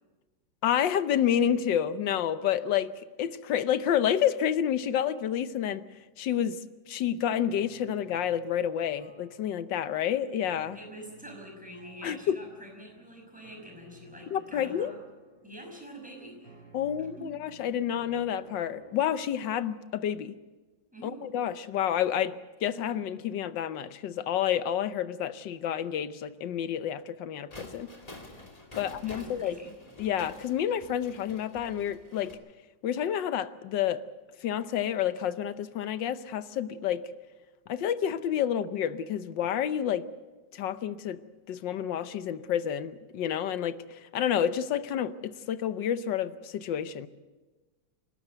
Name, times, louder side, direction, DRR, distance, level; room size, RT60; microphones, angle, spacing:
voice 1, 0.6-2.9 3.2-5.8 6.2-6.6 6.9-10.8 12.0-12.4 14.3-14.9 16.7-20.4 21.0-27.9 28.8-29.6 30.0-32.4 32.8-34.0 34.4-37.0 37.7-40.0 40.5-41.2 41.5-47.1, left 9 dB, 75° left, 13 dB, 1.5 m, -29 dB
sound 1, 7.4-19.4, right 2 dB, 80° right, 3.8 m, -56 dB
voice 2, 10.7-15.0 15.4-16.6 17.0-17.1 20.9-21.2 28.7-29.7, equal, 5° right, 1 dB, 5.8 m, -46 dB
sound 2, 27.5-32.3, left 1 dB, 20° left, 2.5 m, -48 dB
29.0 x 12.5 x 8.0 m, 1.2 s
omnidirectional pair, 2.0 m